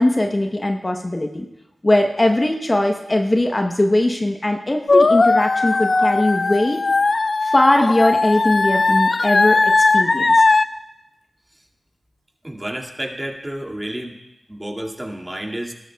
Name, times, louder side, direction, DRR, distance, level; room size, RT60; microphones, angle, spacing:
voice 1, 0.0-1.5 1.8-6.8 7.4-10.4, left 1 dB, 30° left, 3 dB, 0.9 m, -20 dB
sound 1, 4.9-10.7, left 3 dB, 55° left, 0.4 m, -17 dB
voice 2, 12.4-14.2 14.5-15.7, right 1 dB, 20° right, -1 dB, 2.1 m, -30 dB
18.0 x 13.0 x 2.3 m, 0.95 s
cardioid pair, 45°, 0 cm